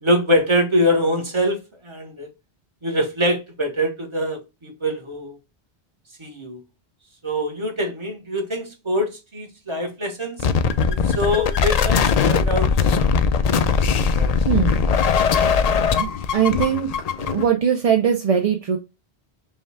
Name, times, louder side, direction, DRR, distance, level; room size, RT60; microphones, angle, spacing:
voice 1, 0.0-2.3 2.8-5.4 6.2-6.6 7.2-10.5 10.9-13.1, equal, 30° right, 1.1 m, -24 dB
sound 1, 10.4-17.5, left 6 dB, 55° left, 0.4 m, -20 dB
voice 2, 14.5-14.8 16.0-16.1 16.3-16.9 17.2-18.8, right 8 dB, 45° right, 0.5 m, -20 dB
5.4 x 2.3 x 3.3 m
omnidirectional pair, 1.1 m